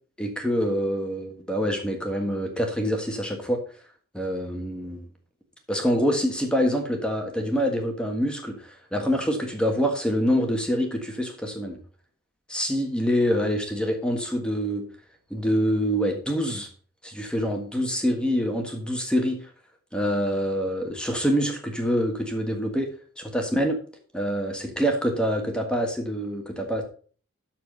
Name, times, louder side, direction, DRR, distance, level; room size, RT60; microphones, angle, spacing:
voice 1, 0.2-3.6 4.1-5.1 5.7-11.8 12.5-14.9 15.3-16.7 17.0-19.4 19.9-22.9 23.2-23.8 24.1-26.8, equal, 5° left, 3 dB, 1.5 m, -26 dB
12.5 x 4.3 x 5.3 m, 0.42 s
head